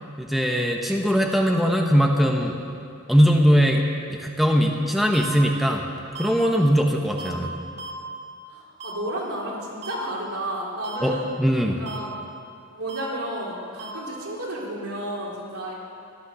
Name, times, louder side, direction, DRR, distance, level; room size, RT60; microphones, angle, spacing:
voice 1, 0.2-2.6 3.1-3.8 4.1-5.8 6.2-7.6 11.0-11.8, equal, ahead, 1 dB, 0.9 m, -20 dB
sound 1, 5.1-5.3 6.2-6.3 7.2-7.3 7.8-7.9 8.8-8.9 9.8-9.9 10.8-11.0 11.9-12.0 12.9-13.0 13.8-13.9, right 4 dB, 30° right, 1.8 m, -36 dB
voice 2, 8.5-11.3 11.8-12.1 12.7-15.8, right 1 dB, 70° right, -4 dB, 3.8 m, -32 dB
14.0 x 12.5 x 6.9 m, 2.5 s
head